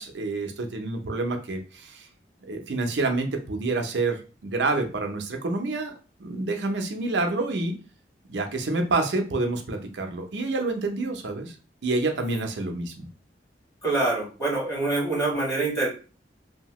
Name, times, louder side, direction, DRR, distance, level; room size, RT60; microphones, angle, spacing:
voice 1, 0.0-2.1 2.5-5.9 6.2-7.8 8.3-11.5 11.8-13.1, right 3 dB, 80° right, 4 dB, 0.6 m, -28 dB
voice 2, 13.8-15.9, right 2 dB, 20° left, -5 dB, 1.5 m, -25 dB
2.8 x 2.1 x 3.0 m, 0.35 s
head